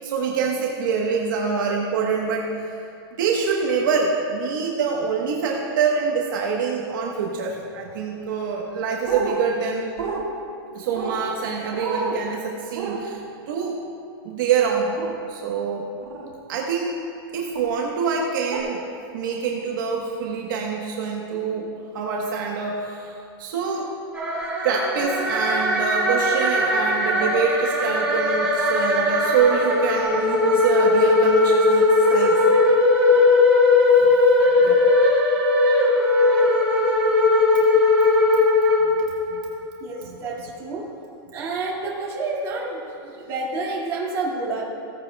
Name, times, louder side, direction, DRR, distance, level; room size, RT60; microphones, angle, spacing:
voice 1, 0.0-2.8 3.2-9.9 10.7-13.8 14.2-15.0 15.3-15.9 16.5-17.0 17.3-18.8 19.1-21.7 21.9-23.9 24.6-32.4 34.6-34.8 39.3-39.4 40.0-40.2, right 5 dB, 60° right, -1 dB, 1.1 m, -25 dB
sound 1, 9.1-9.3 10.0-10.2 11.0-11.2 11.7-12.2 12.7-13.0 15.0-15.1 16.0-16.3 17.5-17.7 18.5-18.6, right 5 dB, 80° right, 1.7 m, -29 dB
sound 2, 24.1-39.4, left 2 dB, 10° right, 2.2 m, -19 dB
voice 2, 39.8-40.9 41.3-44.6, right 3 dB, 25° right, -5 dB, 2.0 m, -29 dB
16.0 x 9.2 x 2.2 m, 2.5 s
supercardioid pair, 165°, 12 cm